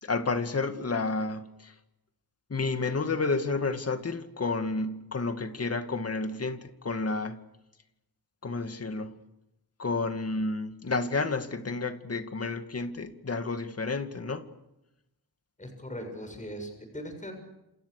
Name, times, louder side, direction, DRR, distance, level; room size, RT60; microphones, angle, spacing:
voice 1, 0.0-1.7 2.5-7.4 8.4-9.1 9.8-14.4, left 3 dB, 40° left, 2.3 m, -30 dB
voice 2, 15.6-17.3, equal, 20° left, 7.0 m, -39 dB
29.5 x 28.5 x 6.7 m
wide cardioid pair, 125°, 39 cm